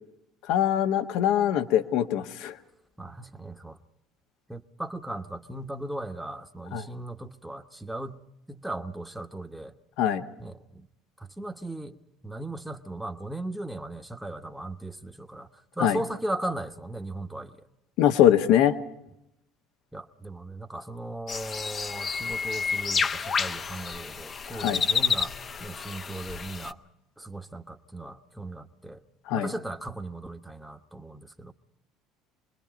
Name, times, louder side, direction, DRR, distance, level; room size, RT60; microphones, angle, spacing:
voice 1, 0.5-2.5 6.7-6.9 10.0-10.2 15.8-16.0 18.0-18.8 24.5-24.8 29.3-29.5, left 10 dB, 65° left, 8 dB, 1.3 m, -22 dB
voice 2, 3.0-3.8 4.5-8.2 8.5-9.7 10.4-10.9 11.2-12.0 12.2-15.5 15.8-17.5 19.9-25.3 25.6-26.8 27.2-29.0 29.3-31.5, right 1 dB, 5° right, 4 dB, 1.2 m, -37 dB
sound 1, 21.3-26.7, left 5 dB, 35° left, 0.9 m, -30 dB
26.5 x 21.0 x 5.2 m, 0.86 s
hypercardioid pair, 70°, 0 cm